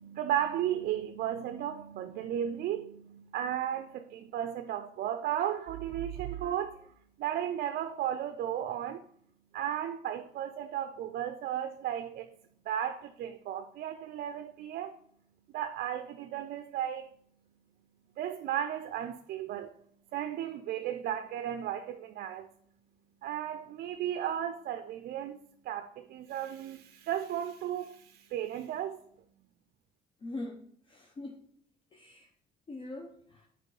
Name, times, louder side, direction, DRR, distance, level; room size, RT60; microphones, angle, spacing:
voice 1, 0.0-6.9 7.2-9.0 9.5-12.3 12.7-14.9 15.5-17.1 18.2-19.8 20.1-22.5 23.2-25.4 25.6-29.0, right 10 dB, 65° right, 0.4 m, -34 dB
voice 2, 30.2-31.4 31.9-32.3 32.7-33.5, left 2 dB, 30° left, 0.6 m, -43 dB
7.5 x 4.5 x 3.2 m
cardioid pair, 110°, 17 cm